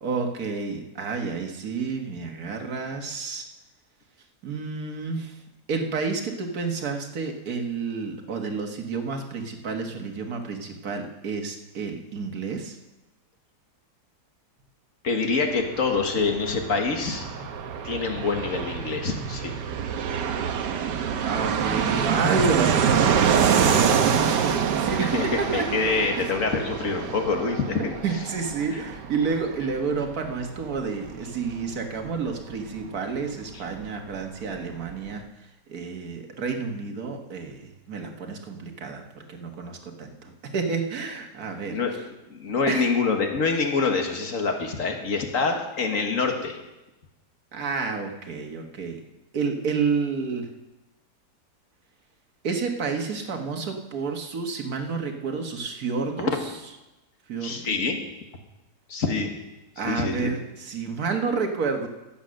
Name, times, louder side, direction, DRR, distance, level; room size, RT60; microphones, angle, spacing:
voice 1, 0.0-3.5 4.4-5.4 5.7-12.8 21.2-25.8 28.0-35.2 35.7-41.8 42.7-42.9 47.5-49.0 49.3-50.5 52.4-56.3 57.3-57.8 59.8-61.9, right 5 dB, 60° right, 4 dB, 1.9 m, -30 dB
voice 2, 15.0-17.3 17.8-19.5 25.0-27.9 28.7-28.8 33.5-33.6 41.7-41.9 42.3-46.6 56.2-56.3 57.4-58.0 58.9-59.3 59.8-60.3, left 4 dB, 50° left, 4 dB, 1.8 m, -26 dB
Fixed-wing aircraft airplane, 15.5-33.9 34.1-34.2 34.4-35.1, right 7 dB, 75° right, 1.5 m, -26 dB
14.5 x 8.2 x 6.4 m, 1.0 s
omnidirectional pair, 1.9 m